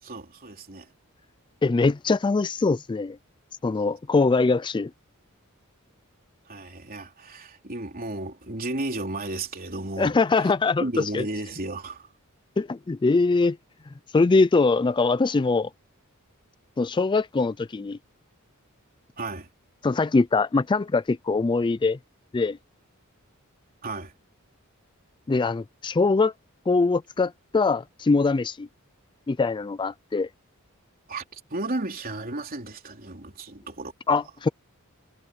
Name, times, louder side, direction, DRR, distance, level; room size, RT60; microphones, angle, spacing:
voice 1, 0.0-0.9 6.5-10.5 10.8-12.1 19.2-19.5 23.8-24.1 31.1-34.2, right 2 dB, 40° right, 3.6 m, -34 dB
voice 2, 1.6-3.2 3.6-4.9 10.0-11.2 12.6-13.6 14.1-15.7 16.8-18.0 19.8-22.0 22.3-22.6 25.3-26.3 26.7-28.7 29.3-30.3 34.1-34.5, left 3 dB, 20° left, 0.3 m, -22 dB
head